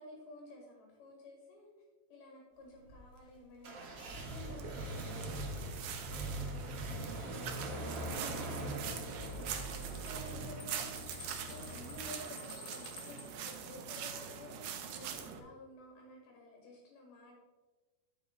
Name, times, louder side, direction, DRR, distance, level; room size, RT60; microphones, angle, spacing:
voice 1, 0.0-1.7 2.1-11.1 11.4-17.3, left 2 dB, 80° left, -1 dB, 4.0 m, -53 dB
sound 1, 2.8-12.0, right 1 dB, 55° right, 1.8 m, -42 dB
sound 2, 3.8-15.4, right 8 dB, 85° right, 2.9 m, -44 dB
sound 3, 7.7-13.2, left 2 dB, 50° left, 1.5 m, -52 dB
10.5 x 7.4 x 3.8 m, 1.3 s
omnidirectional pair, 4.4 m